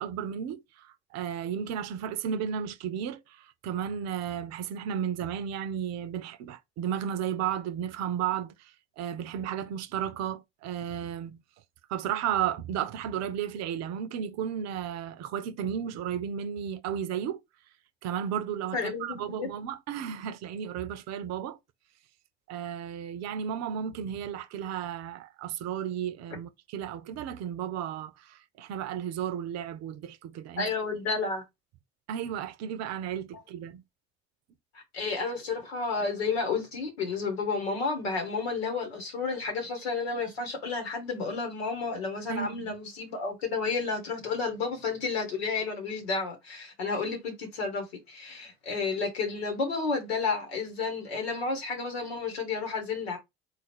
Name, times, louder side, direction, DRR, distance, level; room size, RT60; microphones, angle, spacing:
voice 1, 0.0-11.4 11.9-17.4 18.0-21.6 22.5-30.7 32.1-33.8 42.3-42.7, right 9 dB, 60° right, 0.6 m, -34 dB
voice 2, 18.7-19.5 30.6-31.4 34.9-53.2, left 4 dB, 90° left, 1.3 m, -31 dB
3.8 x 2.5 x 4.3 m
hypercardioid pair, 60°, 30 cm